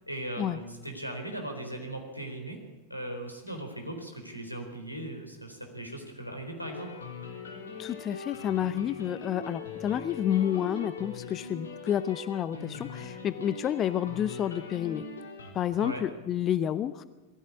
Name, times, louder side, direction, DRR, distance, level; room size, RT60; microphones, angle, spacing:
voice 1, 0.1-2.6 2.9-6.9 15.8-16.0, right 1 dB, 90° left, 3 dB, 4.2 m, -38 dB
sound 1, 6.6-15.5, left 5 dB, 70° left, 3.8 m, -41 dB
voice 2, 7.8-15.0 15.5-17.0, left 10 dB, 30° left, 15 dB, 0.6 m, -30 dB
21.0 x 15.5 x 8.3 m, 1.1 s
figure-of-eight pair, 90°, 0 cm